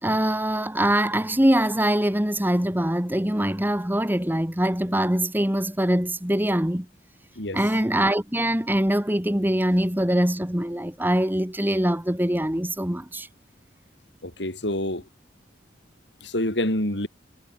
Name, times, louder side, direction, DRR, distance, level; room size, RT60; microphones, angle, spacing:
voice 1, 0.0-6.9 7.5-13.3, right 1 dB, 10° right, 2.0 m, -23 dB
voice 2, 14.2-15.0 16.2-17.1, left 1 dB, 75° left, 6.2 m, -27 dB
head